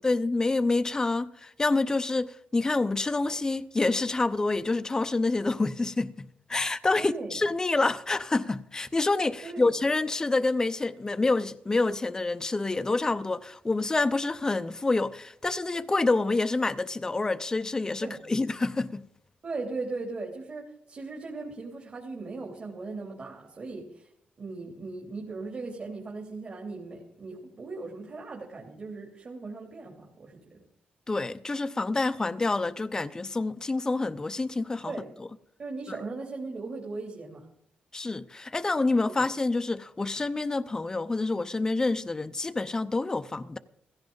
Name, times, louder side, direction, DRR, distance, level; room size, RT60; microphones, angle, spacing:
voice 1, 0.0-19.0 31.1-34.9 37.9-43.6, left 3 dB, 20° left, 0.7 m, -27 dB
voice 2, 7.0-7.4 9.4-9.7 18.0-18.2 19.4-24.1 24.4-30.6 34.8-35.1 35.6-37.5 39.1-39.3, right 3 dB, 40° right, 3.0 m, -38 dB
16.0 x 15.5 x 3.9 m
cardioid pair, 110°, 3 cm